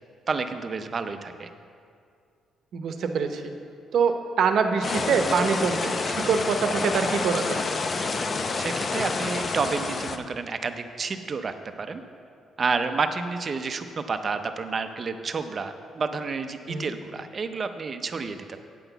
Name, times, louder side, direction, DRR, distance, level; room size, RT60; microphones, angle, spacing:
voice 1, 0.3-1.5 8.6-12.0 12.6-18.6, right 4 dB, 35° right, 8 dB, 0.6 m, -30 dB
voice 2, 2.7-3.5 3.9-7.6 16.7-16.9, right 5 dB, 60° right, 6 dB, 0.8 m, -25 dB
sound 1, 4.8-10.2, left 4 dB, 30° left, 0.5 m, -28 dB
9.1 x 6.0 x 8.0 m, 2.3 s
cardioid pair, 150°, 0 cm